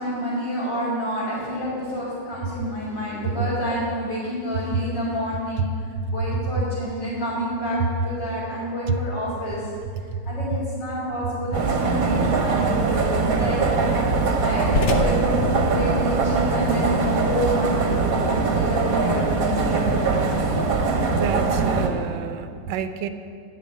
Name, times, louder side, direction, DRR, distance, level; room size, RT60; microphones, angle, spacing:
voice 1, 0.0-5.7 6.1-9.7 10.2-13.6 14.4-20.3, equal, 75° left, -11 dB, 4.2 m, -28 dB
sound 1, 11.5-21.9, right 4 dB, 55° right, 1.5 m, -22 dB
sound 2, 12.6-18.9, left 3 dB, 50° left, 0.9 m, -33 dB
voice 2, 21.1-23.1, right 8 dB, 80° right, 10 dB, 1.4 m, -30 dB
11.0 x 6.9 x 8.7 m, 2.2 s
omnidirectional pair, 2.0 m